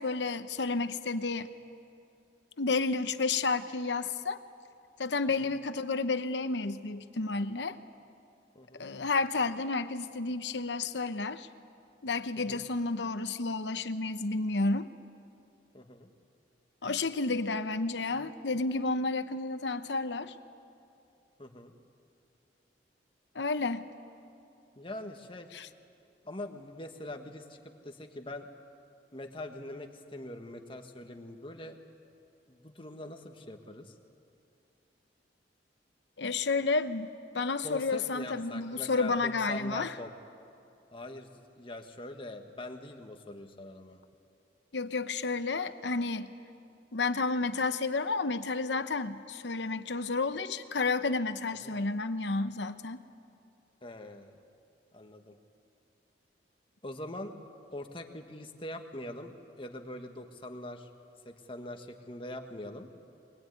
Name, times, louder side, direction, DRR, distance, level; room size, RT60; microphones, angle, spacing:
voice 1, 0.0-1.5 2.6-4.4 5.0-7.8 8.8-11.5 12.0-14.9 16.8-20.3 23.3-23.9 25.5-25.7 36.2-39.9 44.7-46.3 46.9-53.0, left 3 dB, 75° left, 11 dB, 1.0 m, -31 dB
voice 2, 15.7-16.1 21.4-21.7 24.8-25.5 26.2-28.5 29.1-31.8 32.5-33.9 37.6-40.1 40.9-44.0 51.6-51.8 53.8-54.4 54.9-55.4 56.8-57.4 57.7-60.9 61.2-62.9, left 1 dB, 30° left, 5 dB, 1.6 m, -43 dB
22.5 x 21.0 x 9.4 m, 2.6 s
head